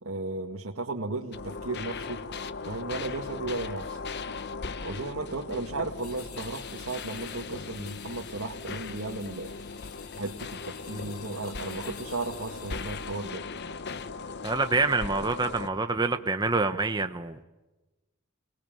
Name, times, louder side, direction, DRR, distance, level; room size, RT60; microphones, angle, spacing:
voice 1, 0.0-2.2 2.7-4.0 4.8-9.5 10.1-13.4, right 2 dB, 70° right, -1 dB, 2.0 m, -35 dB
sound 1, 1.3-15.7, left 4 dB, 50° left, 1.1 m, -38 dB
sound 2, 6.0-13.3, left 9 dB, 80° left, 2.9 m, -50 dB
voice 2, 14.4-17.4, right 3 dB, 20° right, 7 dB, 1.0 m, -26 dB
29.0 x 19.5 x 9.2 m, 1.1 s
head